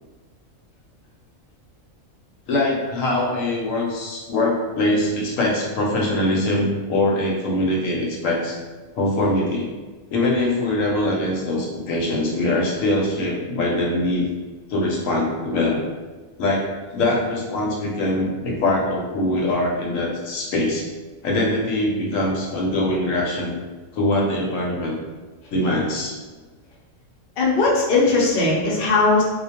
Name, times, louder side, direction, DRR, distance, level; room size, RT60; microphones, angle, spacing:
voice 1, 2.5-8.6 8.9-9.7 10.1-14.3 14.7-15.8 16.4-20.8 21.2-23.5 23.9-24.9 25.5-26.2, left 1 dB, 75° left, -2 dB, 0.9 m, -22 dB
voice 2, 27.4-29.2, left 3 dB, 60° left, -4 dB, 0.6 m, -18 dB
2.3 x 2.2 x 2.8 m, 1.3 s
omnidirectional pair, 1.4 m